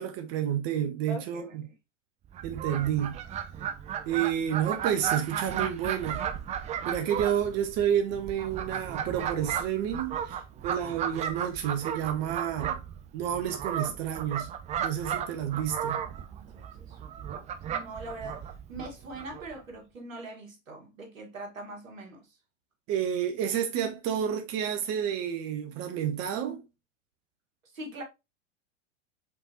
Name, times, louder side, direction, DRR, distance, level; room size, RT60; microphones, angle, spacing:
voice 1, 0.0-1.6 2.4-3.2 4.0-6.2 6.8-12.8 13.1-14.5 14.8-16.0 22.9-26.6, right 9 dB, 40° right, 0.9 m, -30 dB
voice 2, 1.1-1.5 16.3-17.3 17.7-22.4 27.7-28.0, right 2 dB, 85° right, 1.8 m, -42 dB
Fowl, 2.3-19.6, right 9 dB, 20° right, 0.4 m, -35 dB
5.3 x 3.4 x 2.9 m
hypercardioid pair, 100°, 38 cm